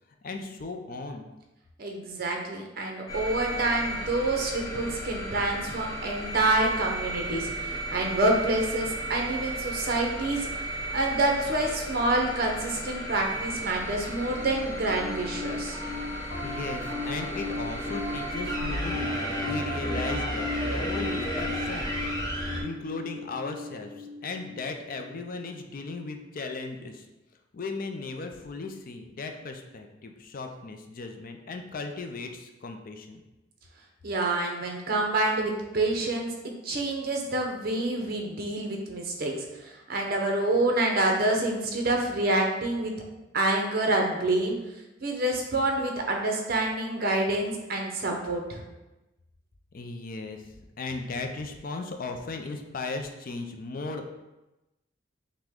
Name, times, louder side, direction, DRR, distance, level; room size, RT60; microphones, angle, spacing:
voice 1, 0.2-1.3 16.4-21.9 22.2-27.1 27.5-33.2 49.7-54.1, left 3 dB, 50° left, 5 dB, 0.4 m, -37 dB
voice 2, 1.8-10.5 10.9-15.8 34.0-36.3 36.6-39.3 39.6-42.9 43.3-44.6 45.0-48.6, right 2 dB, 55° right, 1 dB, 0.8 m, -27 dB
sound 1, 3.1-22.6, right 1 dB, 20° left, 0.8 m, -34 dB
Piano, 14.2-25.7, left 2 dB, 75° left, 1.2 m, -36 dB
5.9 x 2.2 x 3.6 m, 1.0 s
head